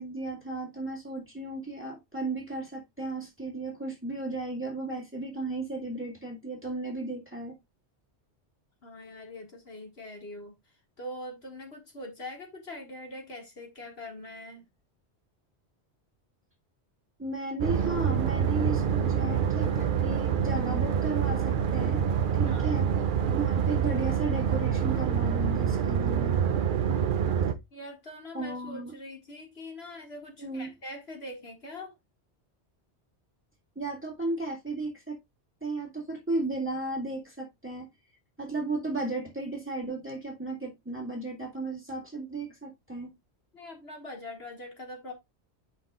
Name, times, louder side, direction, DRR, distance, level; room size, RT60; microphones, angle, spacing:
voice 1, 0.0-7.6 17.2-22.0 22.4-22.9 23.3-26.4 28.3-28.9 30.4-30.7 33.8-35.2 35.6-37.9 38.4-43.1, right 2 dB, 10° right, 2.1 m, -34 dB
voice 2, 8.8-10.5 11.0-14.7 22.4-22.8 27.7-31.9 43.5-45.1, left 1 dB, 65° left, 2.2 m, -43 dB
sound 1, 17.6-27.5, right 8 dB, 55° right, 0.8 m, -26 dB
9.7 x 5.5 x 2.4 m
omnidirectional pair, 1.2 m